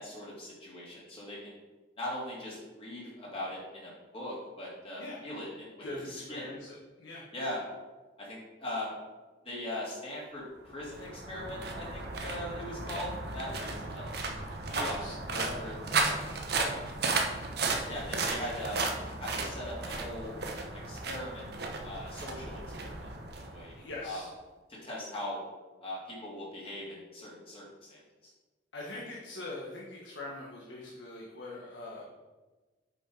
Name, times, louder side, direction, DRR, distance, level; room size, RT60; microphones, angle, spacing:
voice 1, 0.0-1.6 2.0-6.4 7.3-7.6 8.2-8.9 9.4-14.2 14.7-15.0 15.3-16.3 16.7-16.8 17.6-18.9 19.2-20.4 20.9-21.5 21.8-23.1 23.4-23.7 24.0-24.2 24.7-25.4 25.8-28.0, left 1 dB, 30° left, -5 dB, 2.5 m, -40 dB
voice 2, 5.8-7.2 14.6-15.6 16.5-16.8 23.7-24.3 28.7-32.0, left 2 dB, 85° left, -4 dB, 1.4 m, -42 dB
sound 1, 10.7-24.0, right 3 dB, 60° right, 1.0 m, -35 dB
8.0 x 5.6 x 4.8 m, 1.2 s
head